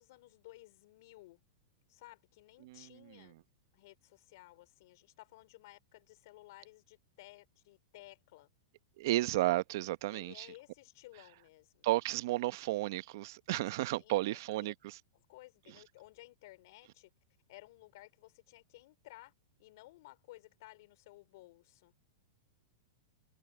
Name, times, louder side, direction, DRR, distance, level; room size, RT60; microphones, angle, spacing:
voice 1, 0.0-1.4 1.9-3.3 3.7-8.5 10.1-11.8 13.9-14.7 15.1-17.1 17.5-19.3 19.6-21.9, left 19 dB, 60° left, 4.8 m, -56 dB
voice 2, 9.0-10.5 11.8-15.0, right 17 dB, 60° right, 0.9 m, -33 dB
hypercardioid pair, 135°, 2 cm